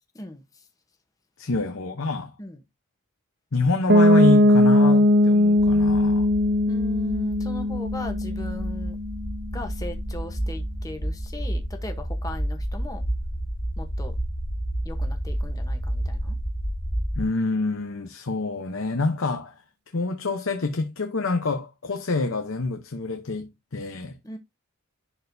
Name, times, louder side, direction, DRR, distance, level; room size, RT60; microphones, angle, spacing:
voice 1, 1.4-2.3 3.5-6.3 17.2-19.6 19.9-24.2, left 3 dB, 65° left, 0.8 m, -27 dB
Piano, 3.9-9.6, left 1 dB, 50° right, 0.6 m, -19 dB
sound 1, 5.6-17.2, right 1 dB, 40° left, 2.4 m, -30 dB
voice 2, 6.7-9.0 9.5-13.0 13.8-14.2 14.8-16.4 24.2-24.4, left 1 dB, 15° left, 0.9 m, -38 dB
11.0 x 4.2 x 2.7 m
head